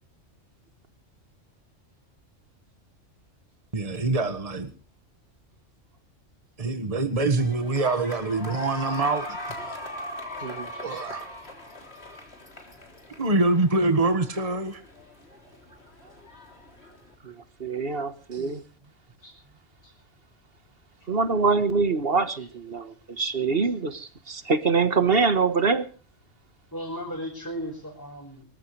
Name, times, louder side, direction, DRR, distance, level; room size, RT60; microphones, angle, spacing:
voice 1, 3.7-4.7 6.6-9.4 9.6-9.7 10.8-11.3 13.2-14.8 18.3-18.5, right 2 dB, 30° right, 9 dB, 1.7 m, -25 dB
sound 1, 7.4-17.1, left 1 dB, 55° left, 3.7 m, -40 dB
voice 2, 17.6-18.6 21.1-25.9, right 4 dB, 50° right, 11 dB, 1.6 m, -24 dB
voice 3, 26.7-28.4, equal, 15° left, -2 dB, 5.5 m, -36 dB
24.5 x 15.0 x 3.3 m, 0.39 s
omnidirectional pair, 1.3 m